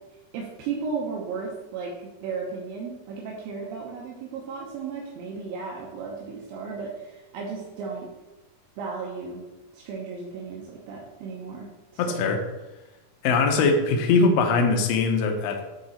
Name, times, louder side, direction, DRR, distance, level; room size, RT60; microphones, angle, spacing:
voice 1, 0.3-8.1 8.8-9.4 9.7-11.7 11.9-12.3, right 5 dB, 85° right, -2 dB, 2.6 m, -35 dB
voice 2, 12.0-12.4 13.2-15.6, left 4 dB, 85° left, 3 dB, 1.4 m, -21 dB
9.4 x 3.9 x 4.4 m, 1.1 s
omnidirectional pair, 4.1 m